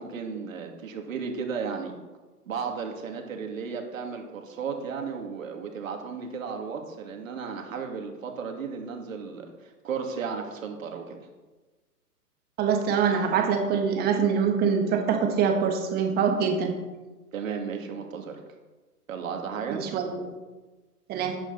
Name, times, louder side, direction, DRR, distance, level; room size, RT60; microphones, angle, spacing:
voice 1, 0.0-1.9 2.5-11.3 17.3-18.4 19.1-19.9, right 6 dB, 55° right, 3 dB, 2.5 m, -34 dB
voice 2, 12.6-16.7 19.7-20.3 21.1-21.3, right 6 dB, 20° right, 4 dB, 1.6 m, -24 dB
15.0 x 10.0 x 4.1 m, 1.2 s
figure-of-eight pair, 125°, 47 cm